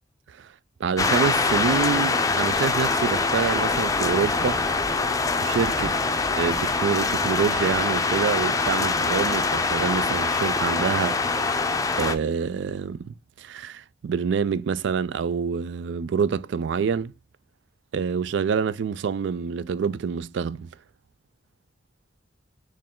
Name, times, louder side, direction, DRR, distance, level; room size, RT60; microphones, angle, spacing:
voice 1, 0.8-4.6 5.4-6.0 6.3-11.6 12.0-17.1 17.9-20.7, right 6 dB, 65° right, 0.3 m, -27 dB
sound 1, 1.0-12.1, left 4 dB, 20° left, 0.5 m, -24 dB
4.6 x 3.1 x 3.6 m
head